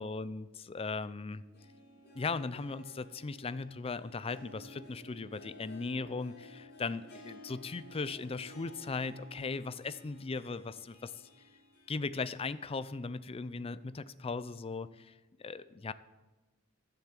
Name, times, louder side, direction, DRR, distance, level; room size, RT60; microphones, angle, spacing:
voice 1, 0.0-1.4 2.1-11.1 11.9-15.1 15.4-15.9, left 4 dB, 30° left, 15 dB, 0.4 m, -38 dB
Harp, 1.3-13.4 13.8-13.9 14.7-14.8, equal, 50° left, 3.4 m, -55 dB
13.0 x 7.2 x 7.4 m, 1.2 s
head